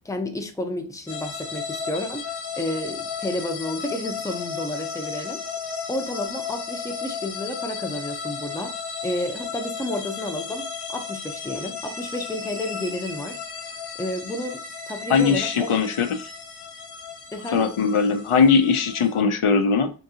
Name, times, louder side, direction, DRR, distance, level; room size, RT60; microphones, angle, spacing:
voice 1, 0.0-2.3 2.6-5.4 5.9-8.7 9.0-13.4 14.0-15.7 17.3-17.7, left 1 dB, 5° left, 0.6 m, -31 dB
sound 1, 1.1-19.2, left 6 dB, 55° left, 0.8 m, -34 dB
voice 2, 15.1-16.3 17.5-19.9, left 5 dB, 85° left, 0.6 m, -20 dB
3.7 x 2.6 x 2.8 m
wide cardioid pair, 55°, 49 cm